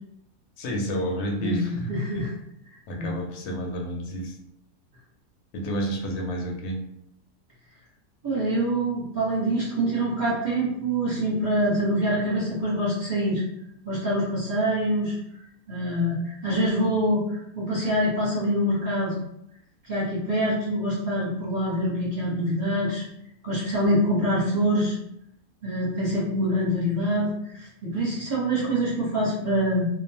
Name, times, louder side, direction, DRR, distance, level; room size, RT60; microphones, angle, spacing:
voice 1, 0.6-2.2 2.9-4.4 5.5-6.8, equal, 75° left, 1 dB, 1.0 m, -30 dB
voice 2, 1.4-2.3 3.0-3.2 8.2-13.4 13.8-15.2 15.7-19.2 19.8-23.1 23.4-25.0 25.6-29.9, equal, 35° right, -8 dB, 0.9 m, -25 dB
2.6 x 2.2 x 2.7 m, 0.77 s
omnidirectional pair, 1.6 m